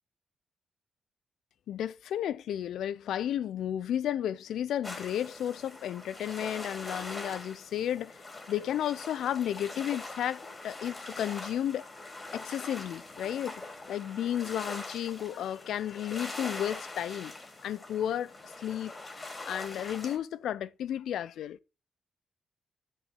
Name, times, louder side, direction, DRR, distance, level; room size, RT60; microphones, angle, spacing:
voice 1, 1.7-11.9 12.3-13.6 13.9-17.4 17.6-21.6, left 10 dB, 85° left, 0.5 m, -33 dB
sound 1, 4.8-20.2, left 2 dB, 30° left, 3.2 m, -43 dB
7.4 x 6.7 x 6.9 m
cardioid pair, 75°, 0 cm